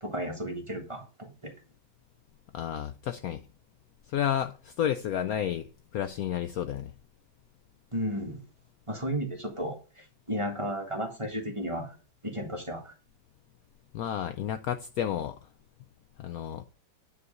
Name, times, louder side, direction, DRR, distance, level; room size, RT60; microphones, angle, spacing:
voice 1, 0.0-1.5 7.9-8.4 8.9-11.9 12.2-12.9, equal, 15° right, 1.5 m, -34 dB
voice 2, 2.5-3.4 4.1-6.9 13.9-15.4 16.2-16.6, left 10 dB, 85° left, 0.7 m, -31 dB
9.6 x 4.7 x 6.4 m
omnidirectional pair, 2.1 m